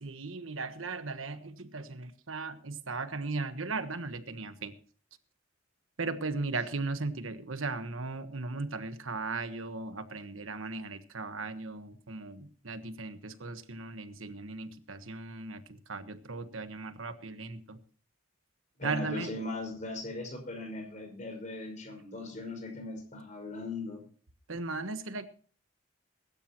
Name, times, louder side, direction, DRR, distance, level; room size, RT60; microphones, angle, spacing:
voice 1, 0.0-4.7 6.0-17.8 18.8-19.3 24.5-25.3, right 3 dB, 85° right, 10 dB, 1.3 m, -37 dB
voice 2, 18.8-24.0, left 2 dB, 35° left, 3 dB, 5.6 m, -39 dB
22.0 x 12.0 x 3.0 m, 0.44 s
head